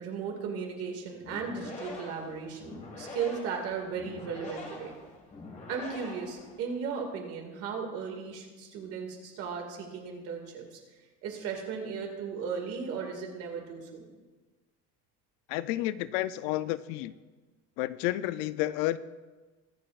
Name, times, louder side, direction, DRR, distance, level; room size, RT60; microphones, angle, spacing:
voice 1, 0.0-5.0 5.7-10.8 11.2-14.0, right 6 dB, 50° right, 2 dB, 2.1 m, -36 dB
sound 1, 1.2-6.9, left 2 dB, 25° left, 1.6 m, -44 dB
voice 2, 15.5-17.1 17.8-19.0, left 15 dB, 80° left, 15 dB, 0.5 m, -30 dB
22.0 x 7.6 x 2.4 m, 1.3 s
cardioid pair, 175°, 31 cm